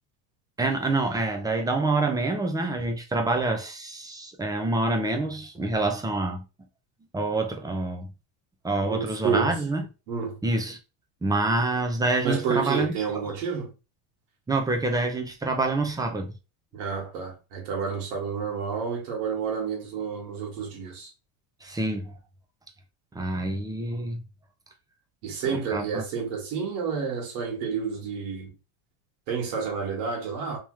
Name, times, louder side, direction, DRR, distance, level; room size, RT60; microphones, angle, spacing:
voice 1, 0.6-6.4 7.1-8.1 8.6-9.8 10.4-10.8 11.2-12.9 14.5-16.3 21.6-22.1 23.1-24.2 25.7-26.0, right 2 dB, 10° right, 0.3 m, -26 dB
voice 2, 8.8-9.6 10.1-10.4 12.2-13.7 16.7-21.1 25.2-28.5 29.3-30.6, right 6 dB, 80° right, 1.9 m, -30 dB
3.5 x 2.9 x 3.1 m
cardioid pair, 130°, 49 cm